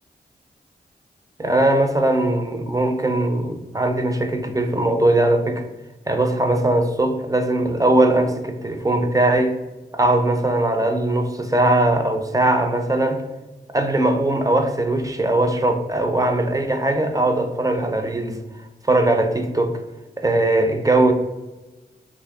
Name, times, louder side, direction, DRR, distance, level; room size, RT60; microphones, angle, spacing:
voice 1, 1.4-5.6 6.1-9.5 9.9-13.2 13.7-18.4 18.8-19.7 20.2-21.1, right 1 dB, 20° right, 5 dB, 0.5 m, -20 dB
2.8 x 2.6 x 3.4 m, 1.1 s
cardioid pair, 50°, 18 cm